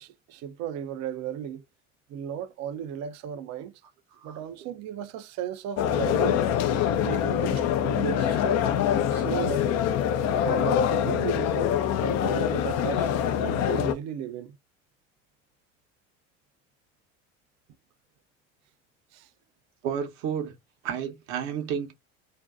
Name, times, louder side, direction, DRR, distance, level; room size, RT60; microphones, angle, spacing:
voice 1, 0.0-1.6 2.1-3.7 4.2-6.4 7.0-8.7 9.1-9.7 10.4-11.7 12.0-13.1 13.4-14.6 19.1-19.3, right 10 dB, 45° right, 0.5 m, -35 dB
sound 1, 5.8-13.9, left 9 dB, 45° left, 0.4 m, -25 dB
voice 2, 19.8-20.5 20.8-21.9, right 8 dB, 65° right, 0.9 m, -31 dB
2.6 x 2.1 x 2.4 m
hypercardioid pair, 65°, 37 cm